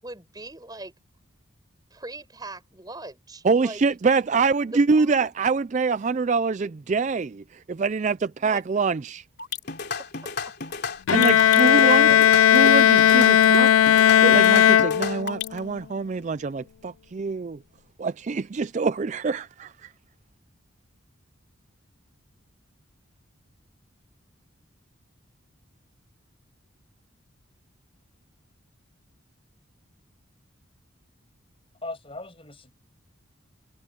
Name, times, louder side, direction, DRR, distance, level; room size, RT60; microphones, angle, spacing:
voice 1, 0.0-0.9 1.9-3.8 4.6-5.2 6.6-6.7 8.5-8.8 10.0-10.4 11.5-12.3, right 2 dB, 20° right, 5.4 m, -40 dB
voice 2, 3.4-9.2 11.1-17.6 18.0-19.9, right 4 dB, 35° right, 0.3 m, -25 dB
sound 1, 9.4-15.6, left 5 dB, 50° left, 3.7 m, -32 dB
Bowed string instrument, 11.1-15.5, left 10 dB, 80° left, 0.3 m, -16 dB
voice 3, 31.8-32.7, left 2 dB, 25° left, 7.2 m, -38 dB
head